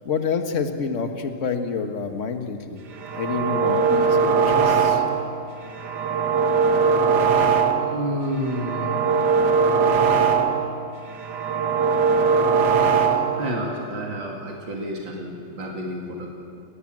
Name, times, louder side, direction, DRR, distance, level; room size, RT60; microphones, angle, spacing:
voice 1, 0.1-2.8 3.1-5.0, left 5 dB, 40° left, 6 dB, 1.8 m, -28 dB
sound 1, 2.9-5.3 5.7-8.0 8.4-10.8 11.1-13.5, right 5 dB, 60° right, 1.9 m, -20 dB
voice 2, 7.9-8.9 13.3-16.3, equal, 80° right, -1 dB, 3.2 m, -29 dB
29.5 x 19.0 x 7.7 m, 2.4 s
omnidirectional pair, 2.0 m